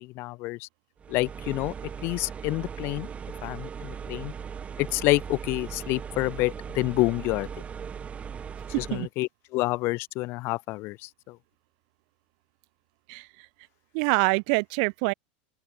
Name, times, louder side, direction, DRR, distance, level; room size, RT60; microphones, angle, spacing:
voice 1, 0.0-0.7 1.1-1.7 2.0-3.1 3.4-4.3 4.8-7.5 8.8-11.4, left 21 dB, 55° left, 1.2 m, -28 dB
sound 1, 1.0-9.1, right 7 dB, 25° right, 6.5 m, -38 dB
voice 2, 13.9-15.1, right 38 dB, 65° right, 0.8 m, -25 dB
open air
supercardioid pair, 125°, 5 cm